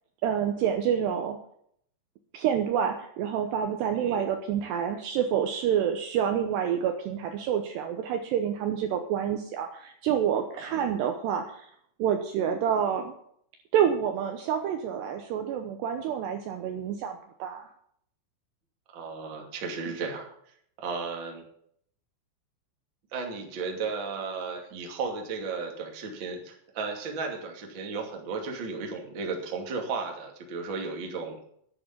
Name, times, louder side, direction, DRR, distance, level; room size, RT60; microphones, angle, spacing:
voice 1, 0.2-1.4 2.3-11.7 12.0-13.2 13.7-17.7, right 8 dB, 75° right, 6 dB, 2.7 m, -28 dB
voice 2, 18.9-20.3 20.8-21.4 23.1-31.4, right 4 dB, 35° right, 2 dB, 2.1 m, -34 dB
11.0 x 10.5 x 7.2 m, 0.67 s
omnidirectional pair, 5.7 m